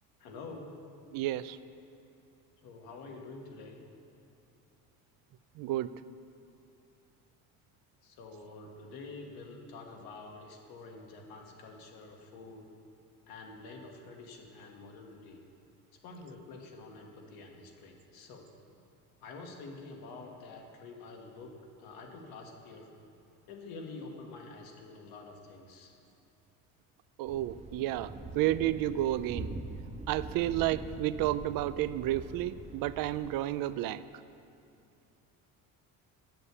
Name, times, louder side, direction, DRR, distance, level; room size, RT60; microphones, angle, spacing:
voice 1, 0.2-0.7 2.6-3.8 8.0-12.7 13.3-15.4 16.0-18.5 19.2-22.9 23.5-25.9, left 3 dB, 80° left, 1 dB, 1.6 m, -47 dB
voice 2, 1.1-1.6 5.6-5.9 27.2-29.5 30.1-34.0, right 14 dB, 70° right, 15 dB, 0.5 m, -31 dB
Thunder, 27.3-33.3, right 2 dB, 20° right, 0.7 m, -44 dB
7.7 x 6.9 x 8.3 m, 2.7 s
cardioid pair, 105°, 37 cm